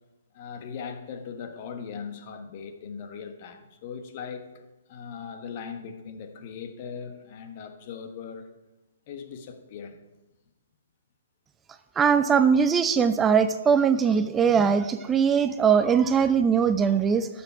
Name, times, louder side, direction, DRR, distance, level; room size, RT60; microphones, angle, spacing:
voice 1, 0.3-8.5 9.1-10.0, left 6 dB, 40° left, 6 dB, 1.2 m, -39 dB
voice 2, 12.0-17.3, right 6 dB, 15° right, 11 dB, 0.4 m, -21 dB
12.0 x 7.1 x 4.5 m, 1.0 s
figure-of-eight pair, 125°, 0 cm